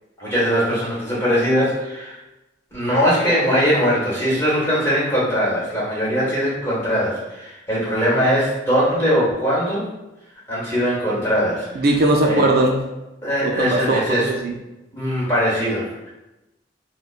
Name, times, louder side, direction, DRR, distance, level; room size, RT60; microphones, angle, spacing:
voice 1, 0.2-2.2 2.7-9.9 10.5-11.8 12.2-12.5 13.2-14.3 14.9-16.1, equal, 15° left, -7 dB, 1.4 m, -21 dB
voice 2, 11.8-12.8 13.4-14.5, right 2 dB, 55° right, 1 dB, 0.4 m, -19 dB
5.2 x 2.2 x 2.4 m, 0.98 s
head